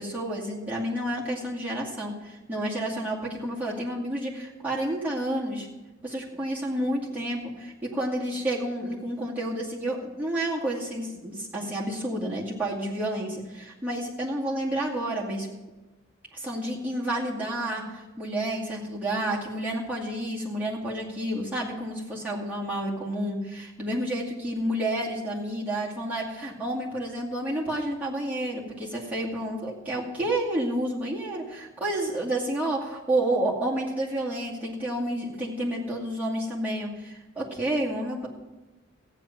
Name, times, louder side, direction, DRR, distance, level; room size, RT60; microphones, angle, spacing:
voice 1, 0.0-5.7 6.0-15.5 16.3-38.3, right 1 dB, 10° right, -6 dB, 2.3 m, -30 dB
14.5 x 9.2 x 6.0 m, 1.1 s
head